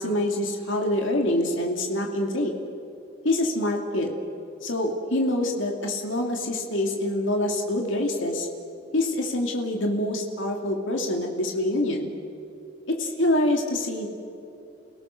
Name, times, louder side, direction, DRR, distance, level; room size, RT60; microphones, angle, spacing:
voice 1, 0.0-2.5 3.2-4.2 4.6-8.5 8.9-12.1 12.9-14.1, left 1 dB, 80° left, 2 dB, 2.5 m, -25 dB
30.0 x 17.5 x 6.5 m, 2.7 s
head